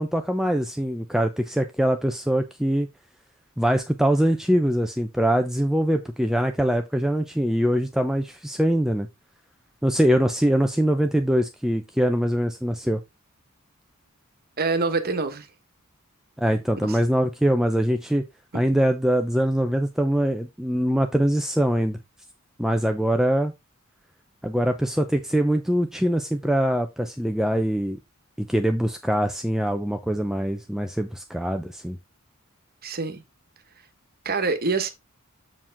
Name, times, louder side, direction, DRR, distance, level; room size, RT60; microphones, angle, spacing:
voice 1, 0.0-2.9 3.6-9.1 9.8-13.0 16.4-18.2 18.5-22.0 22.6-23.5 24.4-28.0 28.4-32.0, equal, ahead, 0.5 m, -23 dB
voice 2, 14.6-15.5 16.8-17.0 32.8-33.2 34.2-34.9, right 4 dB, 45° right, 1.3 m, -25 dB
7.4 x 4.8 x 3.5 m
head